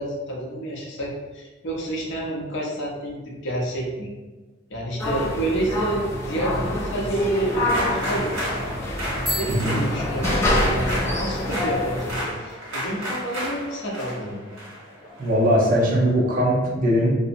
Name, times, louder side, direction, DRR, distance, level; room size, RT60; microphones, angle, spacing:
voice 1, 0.0-4.1 4.7-8.6 9.3-14.4, right 1 dB, 65° left, -3 dB, 0.6 m, -29 dB
sound 1, 5.0-12.2, left 1 dB, 15° left, 0.4 m, -26 dB
sound 2, 7.6-16.0, equal, 85° right, 1.0 m, -32 dB
Bicycle bell, 9.2-10.9, equal, 20° right, 1.2 m, -33 dB
voice 2, 15.2-17.2, equal, 45° right, -4 dB, 0.6 m, -20 dB
2.6 x 2.0 x 2.5 m, 1.2 s
head